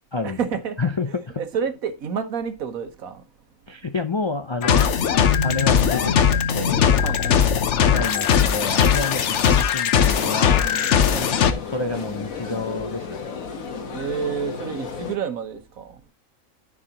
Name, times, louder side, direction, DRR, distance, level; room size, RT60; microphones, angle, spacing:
voice 1, 0.2-0.8 1.4-3.3 7.0-7.5 11.1-11.4 13.9-16.0, right 7 dB, 85° right, 1.5 m, -29 dB
voice 2, 0.8-1.4 3.7-4.9 5.4-6.9 7.9-10.7 11.6-13.3, left 3 dB, 45° left, 0.3 m, -29 dB
sound 1, 4.6-11.5, left 8 dB, 60° left, 1.1 m, -19 dB
sound 2, 10.0-15.2, left 5 dB, 80° left, 1.7 m, -33 dB
13.5 x 4.8 x 2.9 m
omnidirectional pair, 1.4 m